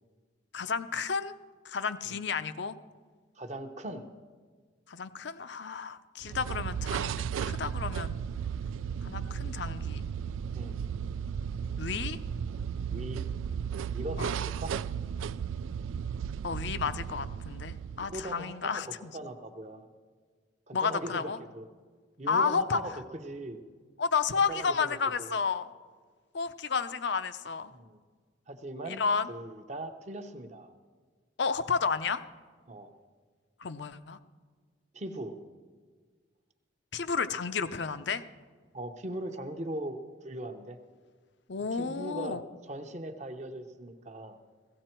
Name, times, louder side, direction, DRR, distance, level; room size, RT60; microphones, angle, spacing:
voice 1, 0.5-1.3 1.6-2.8 4.9-8.2 9.0-10.1 11.8-12.2 14.2-14.3 16.4-19.1 20.7-21.4 22.3-22.8 24.0-25.7 26.3-27.7 28.9-29.3 31.4-32.2 33.6-34.2 36.9-38.2 41.5-42.4, left 5 dB, 65° left, 11 dB, 0.6 m, -31 dB
voice 2, 3.4-4.1 10.5-10.8 12.9-13.3 13.9-14.7 17.9-19.9 20.7-21.7 22.2-23.6 24.5-25.4 27.7-28.0 28.5-29.0 29.3-30.7 32.7-32.9 34.9-35.4 38.7-40.8 41.7-44.4, right 1 dB, 35° right, 7 dB, 0.8 m, -40 dB
sound 1, 6.2-18.4, right 7 dB, 85° right, 0.3 m, -35 dB
16.5 x 15.0 x 4.5 m, 1.5 s
head